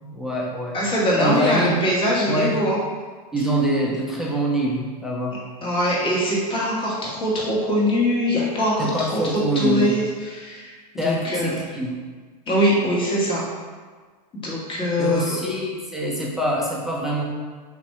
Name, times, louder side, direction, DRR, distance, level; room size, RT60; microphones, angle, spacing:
voice 1, 0.0-0.8 1.2-1.8 2.3-2.6 3.3-5.4 8.8-10.0 11.0-12.0 15.0-17.2, right 1 dB, ahead, -4 dB, 0.5 m, -24 dB
voice 2, 0.7-2.8 5.6-9.2 9.5-11.5 12.5-13.4 14.3-15.4, equal, 25° left, -6 dB, 1.2 m, -22 dB
3.6 x 2.5 x 4.2 m, 1.5 s
supercardioid pair, 135°, 21 cm